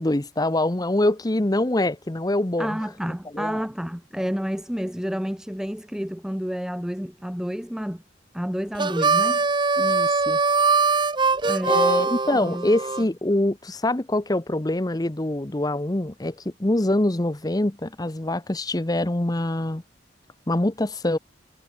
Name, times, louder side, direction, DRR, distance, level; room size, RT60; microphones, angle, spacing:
voice 1, 0.0-2.8 3.3-3.6 9.8-10.4 11.7-19.8 20.5-21.2, left 1 dB, 20° left, 0.9 m, -24 dB
voice 2, 2.6-8.0 8.3-9.5 11.4-11.8 12.3-12.7, equal, 5° right, 0.7 m, -30 dB
Harmonica, 8.7-13.0, right 4 dB, 25° right, 1.0 m, -22 dB
head